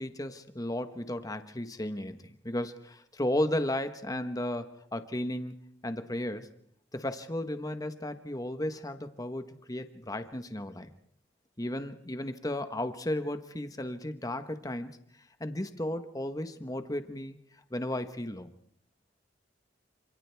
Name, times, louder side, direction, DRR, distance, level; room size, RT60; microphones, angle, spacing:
voice 1, 0.0-6.5 6.9-10.9 11.6-15.0 15.4-17.4 17.7-18.5, left 1 dB, 20° left, 9 dB, 1.1 m, -34 dB
28.0 x 27.0 x 3.5 m, 0.65 s
head